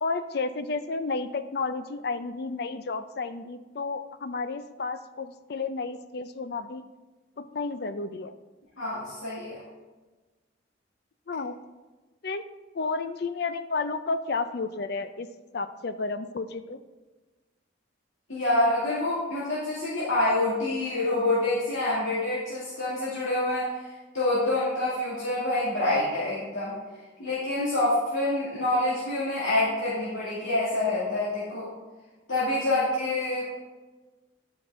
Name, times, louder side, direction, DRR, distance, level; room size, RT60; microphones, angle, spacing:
voice 1, 0.0-6.8 7.4-8.3 11.3-11.6 12.2-12.4 12.7-15.3 15.5-16.8, left 3 dB, 50° left, 11 dB, 0.4 m, -32 dB
voice 2, 8.8-9.6 18.3-23.9 24.1-26.7 27.2-31.7 32.3-33.5, left 2 dB, 85° left, -10 dB, 2.3 m, -27 dB
11.0 x 5.9 x 3.7 m, 1.2 s
head